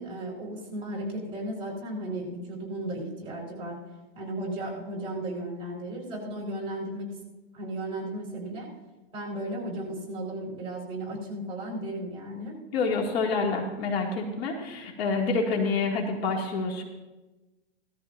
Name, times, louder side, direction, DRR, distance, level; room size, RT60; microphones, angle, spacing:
voice 1, 0.0-3.8 4.1-7.1 7.5-8.7 9.1-12.6, right 1 dB, 15° right, -2 dB, 4.0 m, -35 dB
voice 2, 12.7-16.8, left 4 dB, 65° left, 1 dB, 2.5 m, -27 dB
18.0 x 13.5 x 2.6 m, 1.1 s
hypercardioid pair, 145°, 34 cm